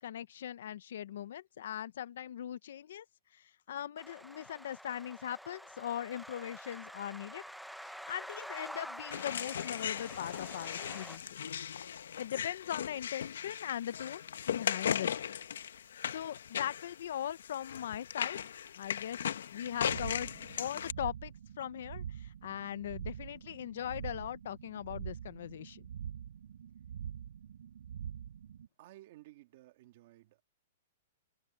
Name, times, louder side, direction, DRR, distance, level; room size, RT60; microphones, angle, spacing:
voice 1, 0.0-3.1 3.3-7.4 7.8-11.4 11.9-15.2 16.1-18.4 18.8-19.2 19.5-25.9, left 10 dB, 55° left, 0.6 m, -40 dB
sound 1, 4.0-11.2, equal, ahead, 0.5 m, -48 dB
sound 2, 9.1-20.9, left 8 dB, 80° left, 1.0 m, -38 dB
sound 3, 19.6-28.7, right 9 dB, 75° right, 4.3 m, -45 dB
voice 2, 28.8-30.4, right 16 dB, 40° right, 1.9 m, -56 dB
hypercardioid pair, 175°, 0 cm